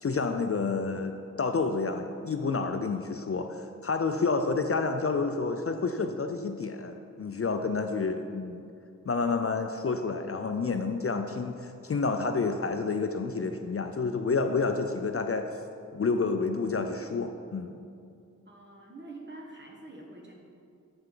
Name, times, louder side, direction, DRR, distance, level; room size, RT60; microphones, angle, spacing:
voice 1, 0.0-8.6 9.1-15.5 15.9-17.7, left 4 dB, 45° left, 6 dB, 0.4 m, -29 dB
voice 2, 18.5-20.3, right 2 dB, 35° right, -1 dB, 1.3 m, -46 dB
7.8 x 5.7 x 3.8 m, 2.5 s
wide cardioid pair, 45°, 32 cm